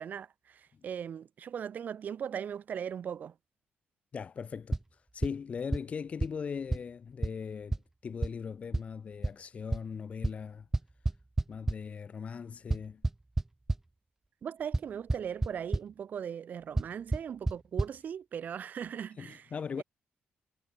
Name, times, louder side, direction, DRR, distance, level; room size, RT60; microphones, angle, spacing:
voice 1, 0.0-3.3 14.4-19.5 19.8-19.9, right 8 dB, 45° right, 5.0 m, -39 dB
voice 2, 4.1-4.8 5.1-10.7 11.5-13.0 19.2-19.8, left 6 dB, 35° left, 2.5 m, -39 dB
sound 1, 4.7-4.8 5.2-5.3 5.7-5.8 6.2-6.3 6.7-6.8 7.2-7.3 7.7-7.8 8.2-8.3 8.7-8.8 9.2-9.3 9.7-9.8 10.2-10.3 10.7-11.7 12.7-13.8 14.7-14.8 15.1-15.5 15.7-15.8 16.8-16.9 17.1-17.2 17.5-17.6 17.8-17.9, right 2 dB, 10° right, 0.6 m, -27 dB
cardioid pair, 170°, 4 cm